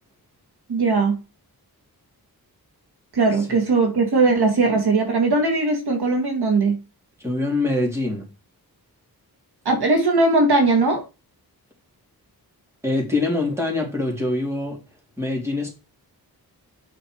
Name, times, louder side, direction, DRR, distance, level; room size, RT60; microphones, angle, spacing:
voice 1, 0.7-1.2 3.1-6.8 9.7-11.0, right 3 dB, 80° right, 2.2 m, -19 dB
voice 2, 7.2-8.2 12.8-14.8 15.2-15.7, left 2 dB, 5° right, 3.3 m, -24 dB
8.2 x 5.5 x 4.7 m
wide cardioid pair, 135°, 38 cm